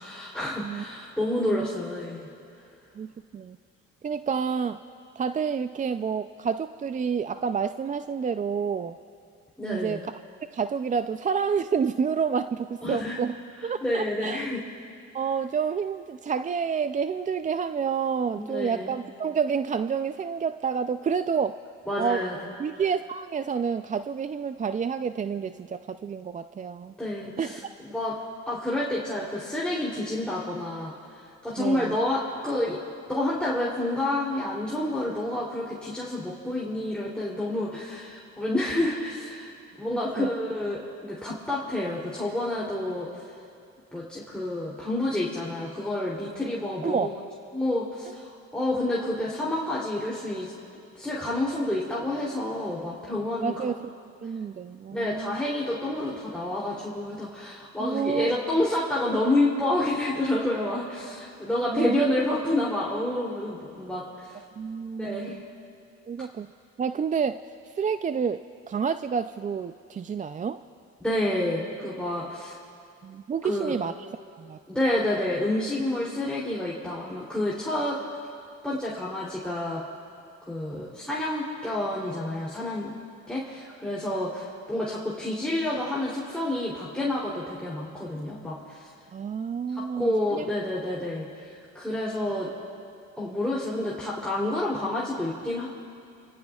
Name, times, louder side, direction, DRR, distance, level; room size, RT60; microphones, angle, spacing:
voice 1, 0.0-2.3 9.6-10.0 12.8-13.2 13.8-14.6 18.3-18.9 21.9-22.3 27.0-27.6 27.9-28.1 28.5-30.9 31.4-32.8 33.1-39.5 39.8-43.1 43.9-47.1 47.5-50.5 50.9-53.5 54.9-64.4 65.0-65.4 71.0-72.6 73.4-73.7 74.7-78.0 78.6-79.8 80.4-82.9 83.3-88.9 89.7-92.5 93.2-95.7, left 1 dB, 5° left, -7 dB, 3.0 m, -29 dB
voice 2, 1.3-1.7 3.0-3.6 4.0-4.8 5.2-9.0 9.6-10.1 10.5-13.3 13.6-14.5 15.1-21.6 22.0-22.2 22.6-26.9 27.4-27.6 31.6-32.0 40.2-40.3 46.8-47.1 53.4-53.9 54.2-55.4 57.8-58.3 61.7-62.0 64.6-65.4 66.1-66.5 66.8-70.6 73.0-74.6 89.1-90.5, right 6 dB, 25° right, 10 dB, 0.4 m, -29 dB
30.0 x 18.0 x 2.4 m, 2.5 s
cardioid pair, 90°, 30 cm